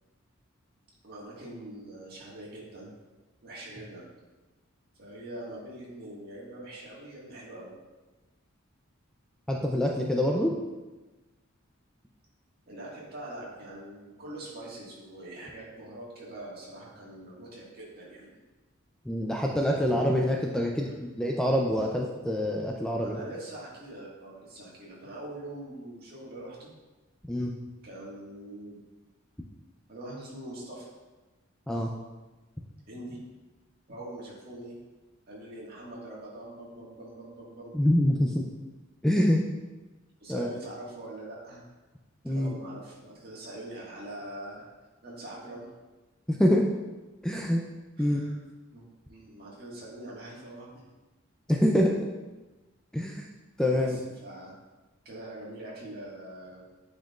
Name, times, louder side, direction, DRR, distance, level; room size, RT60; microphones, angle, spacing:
voice 1, 1.0-2.9 3.4-4.1 5.0-7.7 12.7-18.4 23.0-26.7 27.8-28.8 29.9-30.9 32.9-33.2 33.9-34.7 35.3-37.8 40.2-41.6 42.2-44.7 45.0-45.7 48.0-48.3 48.7-50.8 53.7-53.9 54.2-54.5 55.0-56.6, right 1 dB, 50° right, -5 dB, 1.7 m, -43 dB
voice 2, 9.5-10.5 19.1-23.2 27.3-27.5 31.7-31.9 37.7-38.4 39.0-39.4 40.3-40.5 42.2-42.6 46.3-46.6 47.2-47.6 48.0-48.2 51.5-51.9 52.9-53.3 53.6-54.0, left 1 dB, 5° left, 0 dB, 0.3 m, -25 dB
9.1 x 4.4 x 2.4 m, 1.2 s
head